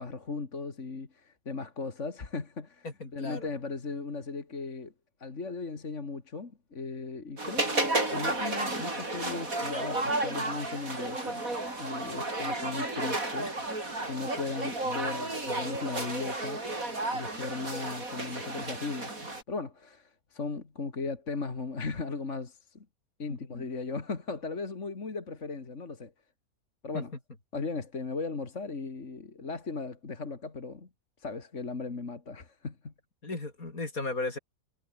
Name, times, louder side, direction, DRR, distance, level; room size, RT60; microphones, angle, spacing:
voice 1, 0.0-2.9 3.1-4.9 5.2-11.4 11.8-16.6 17.1-19.2 19.5-22.9 23.2-26.1 26.8-27.1 27.5-30.9 31.2-32.9, left 4 dB, 55° left, 2.7 m, -37 dB
voice 2, 2.8-3.5 23.3-23.7 26.9-27.0 33.2-34.4, left 3 dB, 70° left, 4.9 m, -36 dB
sound 1, 7.4-19.4, right 2 dB, 65° right, 6.2 m, -32 dB
omnidirectional pair, 1.5 m